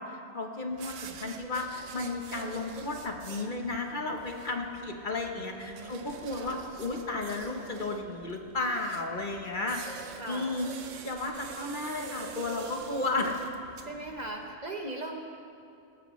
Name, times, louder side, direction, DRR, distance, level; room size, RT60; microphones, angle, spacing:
voice 1, 0.0-10.7 11.0-13.4, left 3 dB, 45° left, 2 dB, 1.1 m, -34 dB
Nails on Chalkboard by Autumn Thomason, 0.7-14.5, right 6 dB, 80° right, 1.1 m, -46 dB
voice 2, 5.3-6.7 10.2-10.6 13.9-15.2, right 2 dB, 40° right, 2 dB, 0.9 m, -40 dB
17.5 x 15.5 x 3.1 m, 2.5 s
omnidirectional pair, 1.3 m